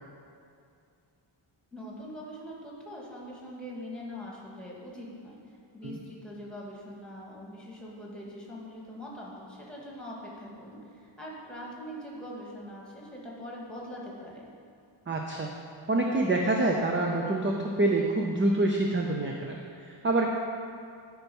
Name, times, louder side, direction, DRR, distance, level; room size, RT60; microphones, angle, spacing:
voice 1, 1.7-5.4 5.7-14.5, equal, ahead, -4 dB, 2.0 m, -42 dB
voice 2, 15.1-15.5 15.9-20.3, right 2 dB, 25° right, 0 dB, 0.6 m, -26 dB
12.5 x 4.6 x 5.4 m, 2.4 s
wide cardioid pair, 130°, 47 cm